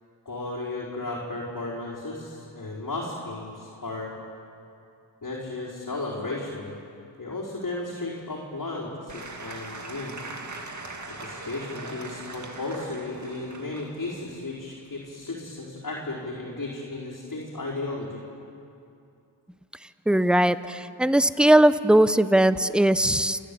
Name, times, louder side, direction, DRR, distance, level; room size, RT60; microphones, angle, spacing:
voice 1, 0.2-4.1 5.2-6.7 7.2-10.3 11.1-18.2, left 2 dB, 45° left, -7 dB, 4.8 m, -34 dB
Applause / Crowd, 9.1-15.4, right 3 dB, 40° right, 2.3 m, -41 dB
voice 2, 20.1-23.4, right 1 dB, ahead, 13 dB, 0.7 m, -19 dB
28.5 x 12.0 x 8.6 m, 2.6 s
cardioid pair, 60°, 45 cm